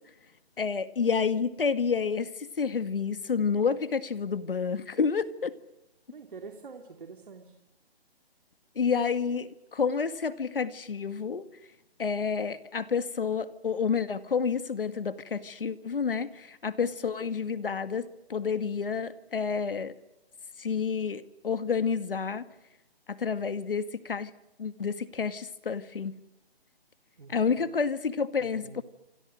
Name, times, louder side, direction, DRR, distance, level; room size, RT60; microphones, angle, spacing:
voice 1, 0.6-5.5 8.8-11.5 12.0-19.9 20.6-22.5 23.1-24.3 24.6-26.2 27.3-28.8, left 5 dB, 60° left, 2.0 m, -29 dB
voice 2, 6.1-7.6 27.2-27.7 28.5-28.8, right 5 dB, 55° right, 2.8 m, -46 dB
27.5 x 27.0 x 6.5 m
hypercardioid pair, 165°, 31 cm